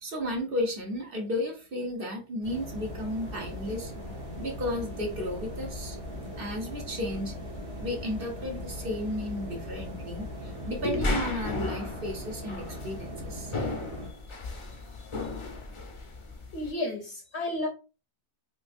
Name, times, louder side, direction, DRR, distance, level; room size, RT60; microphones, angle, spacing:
voice 1, 0.0-3.9 4.4-6.0 6.4-7.3 7.8-13.5, left 1 dB, 55° right, 1.1 m, -33 dB
sound 1, 2.4-16.7, left 3 dB, 35° left, 0.5 m, -38 dB
sound 2, 2.4-14.1, equal, 30° right, 1.0 m, -40 dB
voice 2, 16.5-17.7, left 1 dB, 70° left, 1.0 m, -32 dB
3.9 x 2.5 x 2.5 m
omnidirectional pair, 1.2 m